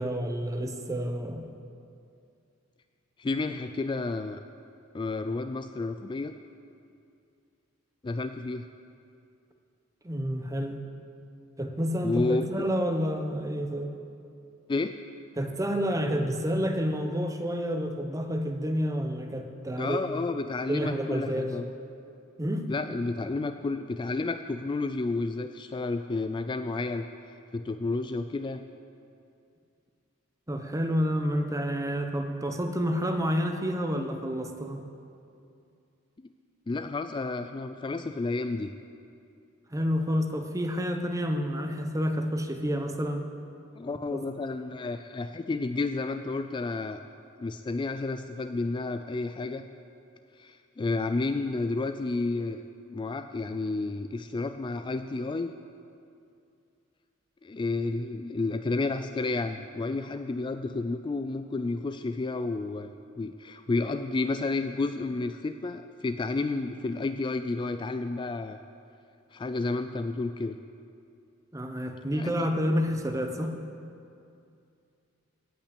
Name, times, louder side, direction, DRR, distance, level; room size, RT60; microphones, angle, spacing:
voice 1, 0.0-1.5 10.0-10.8 11.6-13.9 15.4-20.0 20.7-21.5 22.4-22.7 30.5-34.8 39.7-43.3 43.9-44.2 71.5-73.5, equal, 15° right, 5 dB, 0.9 m, -29 dB
voice 2, 3.2-4.4 4.9-6.3 8.0-8.6 12.0-12.7 14.7-14.9 19.8-21.7 22.7-27.0 27.5-28.6 36.7-38.7 43.8-47.0 47.4-49.7 50.4-52.6 52.9-55.5 57.4-68.6 69.3-70.6 72.1-72.5, left 3 dB, 25° left, 9 dB, 0.3 m, -31 dB
17.0 x 5.9 x 8.3 m, 2.5 s
head